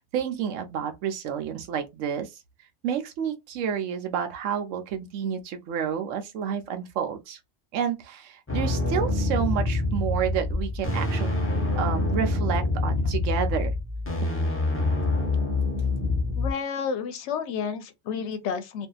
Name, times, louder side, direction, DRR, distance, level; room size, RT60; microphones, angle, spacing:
voice 1, 0.0-2.3 2.8-7.4 7.7-13.7, right 8 dB, 85° right, 1.0 m, -30 dB
sound 1, 8.5-16.5, left 2 dB, 15° left, 0.5 m, -26 dB
voice 2, 16.4-18.9, left 6 dB, 70° left, 0.8 m, -31 dB
2.6 x 2.4 x 2.3 m
omnidirectional pair, 1.3 m